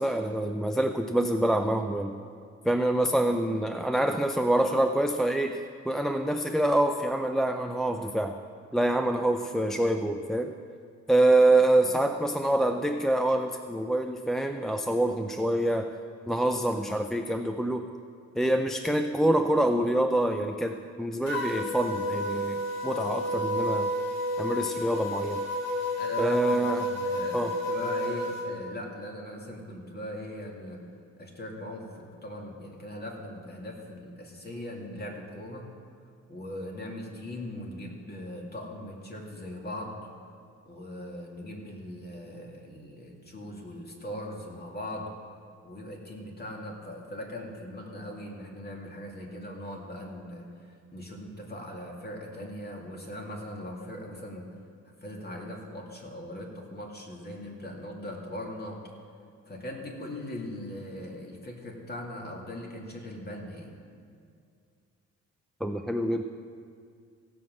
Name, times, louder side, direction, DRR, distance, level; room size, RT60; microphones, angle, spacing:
voice 1, 0.0-2.2 2.6-8.4 8.7-10.5 11.1-15.9 16.3-17.9 18.4-23.9 24.4-25.4 26.2-26.9 27.3-27.5 65.6-66.2, right 1 dB, ahead, 5 dB, 0.5 m, -26 dB
sound 1, 21.3-28.4, left 1 dB, 60° left, 2.4 m, -31 dB
voice 2, 26.0-30.8 31.2-35.7 36.3-40.0 40.7-45.1 45.6-54.5 55.0-58.8 59.5-63.7, left 1 dB, 30° left, -1 dB, 2.5 m, -40 dB
16.0 x 5.7 x 7.7 m, 2.3 s
cardioid pair, 90°, 30 cm